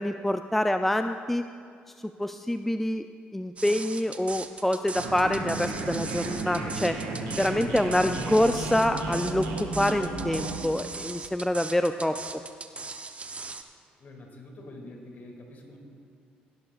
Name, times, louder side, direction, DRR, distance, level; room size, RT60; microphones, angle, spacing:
voice 1, 0.0-1.5 2.0-3.1 3.3-7.0 7.4-12.2, left 1 dB, 5° left, 8 dB, 0.4 m, -26 dB
sound 1, 3.6-13.6, right 4 dB, 30° right, 0.8 m, -39 dB
sound 2, 4.9-10.6, right 3 dB, 85° right, 1.6 m, -33 dB
voice 2, 14.0-15.8, left 1 dB, 45° left, 1 dB, 2.4 m, -45 dB
16.5 x 10.5 x 2.4 m, 2.3 s
hypercardioid pair, 60°, 4 cm